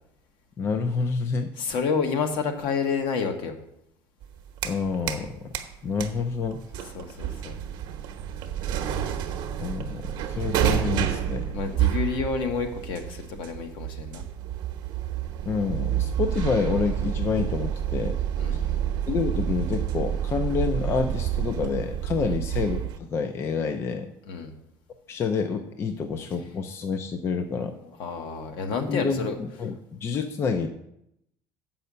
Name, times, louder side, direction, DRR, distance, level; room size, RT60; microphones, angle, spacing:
voice 1, 0.6-1.5 4.6-5.5 5.8-6.6 9.6-11.5 15.5-18.2 18.5-18.6 19.1-24.1 25.1-27.8 28.9-30.7, left 5 dB, 30° left, 7 dB, 0.5 m, -28 dB
voice 2, 1.6-3.6 6.9-7.6 11.5-14.2 18.4-18.8 22.2-22.4 24.2-24.5 28.0-29.4, left 5 dB, 65° left, 5 dB, 1.3 m, -29 dB
sound 1, 4.2-5.3 5.5-23.0, right 10 dB, 60° right, 0.9 m, -29 dB
7.4 x 5.6 x 6.8 m, 0.79 s
cardioid pair, 165°, 9 cm